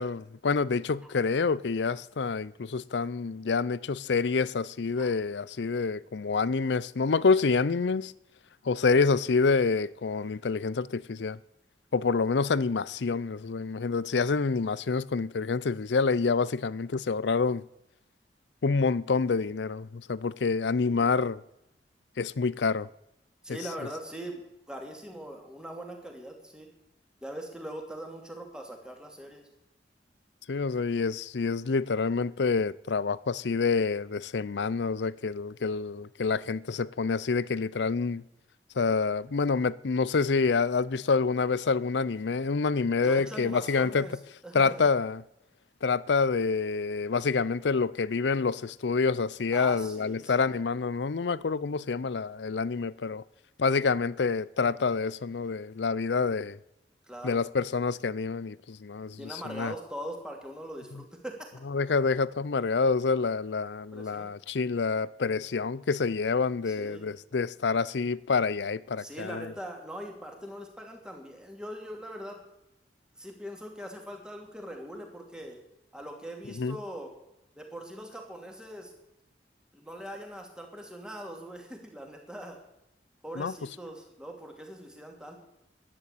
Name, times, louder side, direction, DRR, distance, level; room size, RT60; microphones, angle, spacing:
voice 1, 0.0-8.1 8.6-11.4 11.9-17.6 18.6-21.4 22.2-22.9 30.5-38.2 38.8-44.1 44.5-45.2 45.8-53.2 53.6-56.6 57.2-59.7 61.7-69.5 76.6-76.8 83.4-83.5, left 4 dB, 75° left, 0.5 m, -27 dB
voice 2, 23.4-24.4 24.7-26.7 27.2-29.5 43.0-44.2 44.4-44.9 49.5-50.5 57.1-57.4 59.2-61.5 63.9-64.3 66.7-67.1 69.0-72.4 73.2-75.6 75.9-77.1 77.6-78.9 79.7-82.6 83.2-85.4, right 1 dB, 5° right, 2.7 m, -41 dB
12.0 x 10.0 x 8.5 m
head